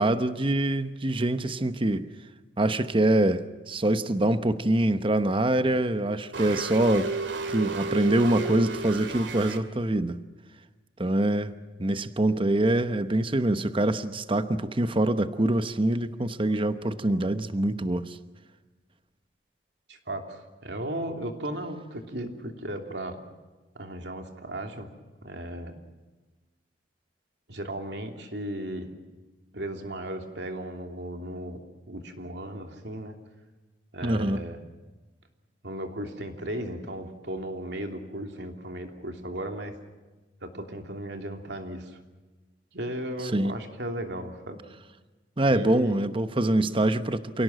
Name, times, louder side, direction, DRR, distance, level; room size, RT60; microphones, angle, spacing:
voice 1, 0.0-2.1 2.6-7.1 7.5-10.2 11.0-11.5 11.8-18.2 34.0-34.4 43.3-43.5 45.4-47.4, right 1 dB, 30° right, 11 dB, 1.0 m, -24 dB
sound 1, 6.3-9.6, right 3 dB, 90° right, 2.3 m, -33 dB
voice 2, 19.9-23.2 23.7-24.9 25.2-25.8 27.5-28.9 29.5-31.6 31.9-33.1 33.9-34.6 35.6-39.7 40.4-42.0 42.7-44.6 45.5-46.1, right 1 dB, 70° right, 5 dB, 3.0 m, -36 dB
28.5 x 17.5 x 7.7 m, 1.2 s
head